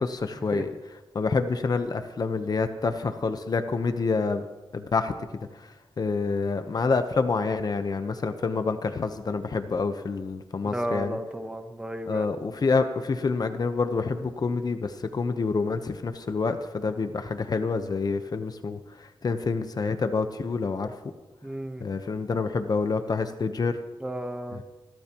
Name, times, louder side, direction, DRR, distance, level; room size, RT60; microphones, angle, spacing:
voice 1, 0.0-4.4 4.7-11.2 12.1-20.9 21.8-23.8 24.5-24.6, left 4 dB, 45° left, 8 dB, 0.9 m, -27 dB
voice 2, 10.7-12.3 21.4-21.8 24.0-24.6, right 1 dB, 10° right, 7 dB, 1.0 m, -33 dB
29.0 x 12.0 x 3.0 m, 1.2 s
wide cardioid pair, 145°, 9 cm